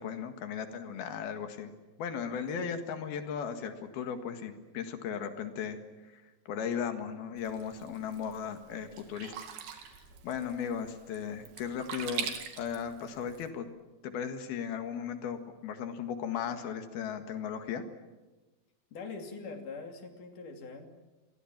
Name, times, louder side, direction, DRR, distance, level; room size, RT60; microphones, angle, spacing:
voice 1, 0.0-9.3 9.9-10.0 10.2-12.3 12.6-13.7 14.0-17.8, left 7 dB, 85° left, 8 dB, 3.7 m, -36 dB
Sink (filling or washing), 7.4-13.5, right 7 dB, 90° right, 4.2 m, -43 dB
voice 2, 18.9-20.9, left 4 dB, 60° left, 5 dB, 4.3 m, -43 dB
29.0 x 23.0 x 7.4 m, 1.2 s
omnidirectional pair, 4.3 m